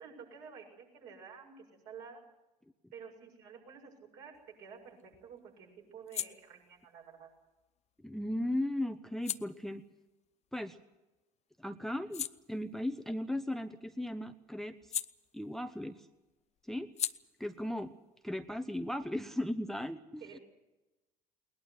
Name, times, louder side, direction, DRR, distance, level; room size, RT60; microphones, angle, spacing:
voice 1, 0.0-2.2 2.9-7.3 20.2-20.4, right 6 dB, 55° right, 0 dB, 7.1 m, -51 dB
sound 1, 4.3-11.2 11.6-19.5, left 10 dB, 35° left, 0.7 m, -45 dB
voice 2, 8.0-9.8 10.5-10.8 11.6-15.0 15.3-16.1 16.7-16.9 17.4-18.0 18.2-20.4, left 1 dB, ahead, 11 dB, 0.9 m, -37 dB
21.0 x 19.5 x 8.0 m, 1.0 s
figure-of-eight pair, 65°, 20 cm